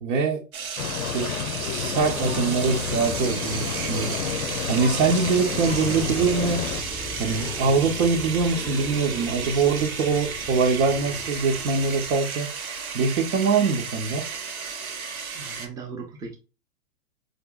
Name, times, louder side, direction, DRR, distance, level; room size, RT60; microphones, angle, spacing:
voice 1, 0.0-1.3 1.6-4.2 4.7-6.7 7.2-12.7 12.9-14.3, right 4 dB, 60° right, 0.9 m, -24 dB
sound 1, 0.5-15.7, right 6 dB, 85° right, 1.0 m, -33 dB
sound 2, 0.8-6.8, left 9 dB, 90° left, 0.5 m, -31 dB
sound 3, 1.8-12.2, left 2 dB, 10° left, 0.9 m, -38 dB
voice 2, 15.3-16.4, right 4 dB, 10° right, 0.6 m, -38 dB
5.0 x 2.6 x 2.3 m
hypercardioid pair, 120°, 41 cm